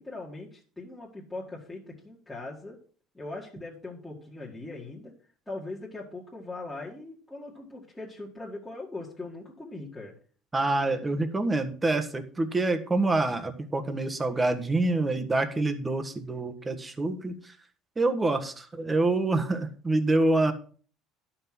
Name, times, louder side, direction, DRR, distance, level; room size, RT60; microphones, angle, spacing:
voice 1, 0.0-2.8 3.1-5.1 5.5-10.1, left 2 dB, 5° left, -5 dB, 2.1 m, -40 dB
voice 2, 10.5-17.5 18.0-20.5, right 2 dB, 15° right, 7 dB, 1.4 m, -26 dB
11.5 x 5.8 x 6.1 m, 0.42 s
cardioid pair, 135°, 0 cm